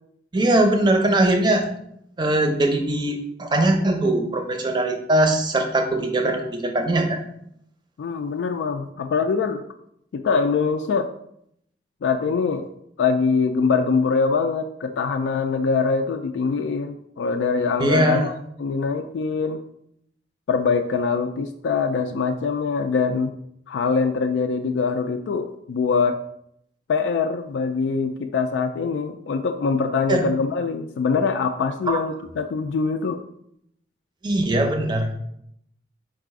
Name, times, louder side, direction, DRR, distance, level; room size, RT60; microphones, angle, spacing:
voice 1, 0.3-1.7 2.2-7.2 17.8-18.3 30.1-30.3 31.9-32.0 34.2-35.1, right 1 dB, 25° right, 4 dB, 0.6 m, -21 dB
voice 2, 8.0-9.6 10.1-11.1 12.0-12.7 13.0-18.3 18.6-19.6 20.5-23.3 23.7-26.2 26.9-33.2, left 5 dB, 80° left, 6 dB, 0.3 m, -23 dB
4.6 x 2.4 x 4.7 m, 0.73 s
head